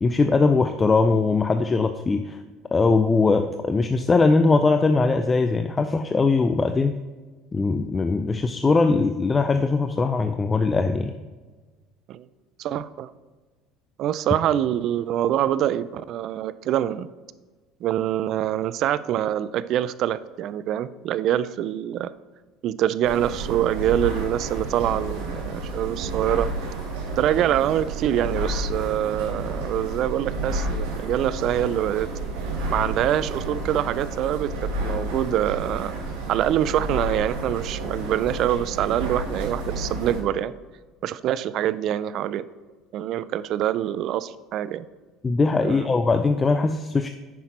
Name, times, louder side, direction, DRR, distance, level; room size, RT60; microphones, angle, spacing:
voice 1, 0.0-2.4 2.7-6.9 7.5-11.1 45.2-47.1, left 3 dB, 20° left, 8 dB, 0.4 m, -21 dB
voice 2, 12.6-13.1 14.0-17.1 17.8-22.1 22.6-26.5 27.2-32.1 32.7-34.5 34.8-35.9 36.3-40.5 41.0-42.5 42.9-44.9 45.6-45.9, right 11 dB, 55° right, 16 dB, 0.4 m, -25 dB
sound 1, 23.0-40.2, right 2 dB, 90° right, 2.3 m, -31 dB
9.2 x 5.9 x 4.3 m, 1.3 s
supercardioid pair, 105°, 0 cm